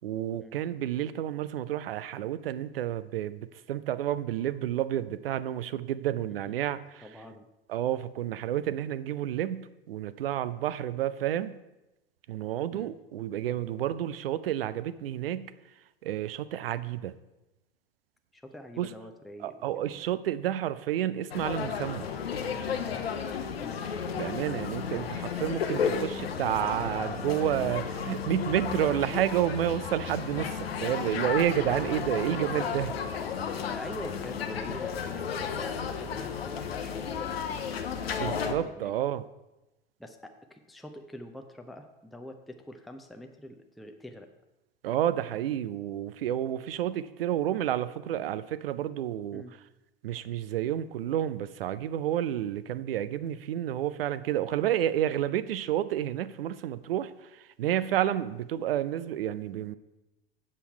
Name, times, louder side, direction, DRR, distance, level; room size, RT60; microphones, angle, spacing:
voice 1, 0.0-7.1 7.7-11.6 12.3-15.5 16.0-17.1 18.8-18.9 19.4-22.1 24.2-32.9 38.0-39.2 44.8-49.4 50.0-59.7, right 11 dB, 70° right, 15 dB, 0.5 m, -30 dB
voice 2, 7.0-7.5 12.7-12.9 18.3-20.0 23.6-23.9 32.3-32.7 33.6-38.9 40.0-44.3 49.3-49.5, left 1 dB, ahead, 5 dB, 0.6 m, -45 dB
sound 1, 21.3-38.5, left 6 dB, 75° left, 0.8 m, -33 dB
7.5 x 6.9 x 4.6 m, 0.99 s
figure-of-eight pair, 80°, 31 cm